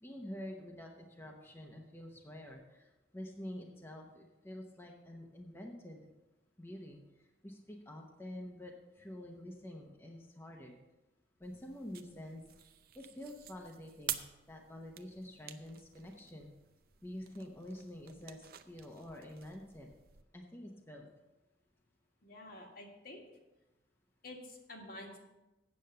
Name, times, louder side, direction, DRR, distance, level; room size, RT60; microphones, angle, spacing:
voice 1, 0.0-6.1 6.6-7.0 7.4-10.8 11.4-12.4 12.9-14.2 14.5-16.5 17.0-19.9 20.3-21.1, left 1 dB, 15° left, 0 dB, 0.9 m, -48 dB
sound 1, 11.4-20.2, right 11 dB, 60° right, 0.6 m, -49 dB
voice 2, 22.2-23.2 24.2-25.2, left 1 dB, 55° left, 0 dB, 1.8 m, -49 dB
8.6 x 7.1 x 6.7 m, 1.1 s
head